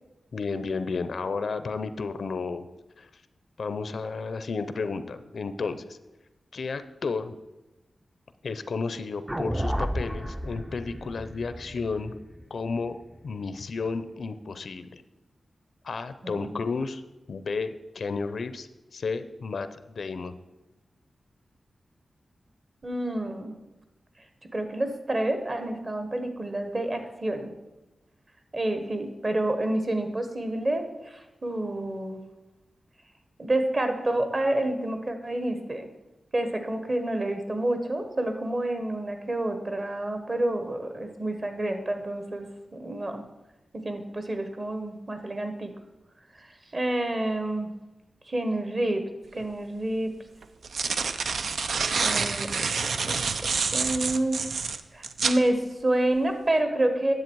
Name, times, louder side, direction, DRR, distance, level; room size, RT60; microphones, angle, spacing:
voice 1, 0.3-2.7 3.0-3.1 3.6-6.0 6.5-7.4 8.4-12.2 12.5-13.0 13.2-15.0 15.8-17.0 17.3-20.4, left 4 dB, 70° left, 12 dB, 0.5 m, -32 dB
sound 1, 9.3-13.6, equal, 10° right, 0.4 m, -33 dB
voice 2, 22.8-23.5 24.5-27.5 28.5-32.2 33.4-35.9 36.3-42.5 42.7-43.2 43.7-45.7 46.7-47.7 48.3-49.0 49.4-50.1 52.0-53.1 53.7-54.4 54.9-57.1, right 1 dB, 40° right, 6 dB, 1.3 m, -28 dB
sound 2, 49.4-49.5 50.4-55.4, right 5 dB, 85° right, 0.5 m, -28 dB
10.5 x 7.3 x 4.6 m, 1.1 s
wide cardioid pair, 100°, 0 cm